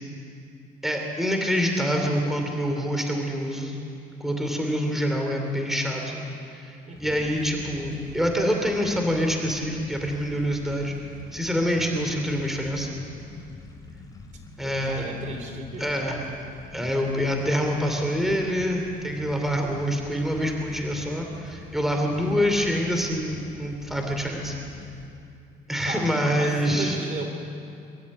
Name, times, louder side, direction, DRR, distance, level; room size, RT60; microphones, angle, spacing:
voice 1, 0.8-3.8 4.2-6.2 6.5-11.0 11.3-12.9 14.6-15.1 15.8-16.2 16.7-24.5 25.7-27.0, equal, ahead, 2 dB, 2.8 m, -26 dB
sound 1, 6.9-25.1, left 3 dB, 20° left, 2.8 m, -45 dB
voice 2, 6.9-7.3 14.6-15.9 22.0-22.5 25.8-26.1 26.4-27.3, right 3 dB, 45° right, 4 dB, 3.1 m, -36 dB
23.5 x 13.0 x 8.4 m, 2.6 s
cardioid pair, 110°, 17 cm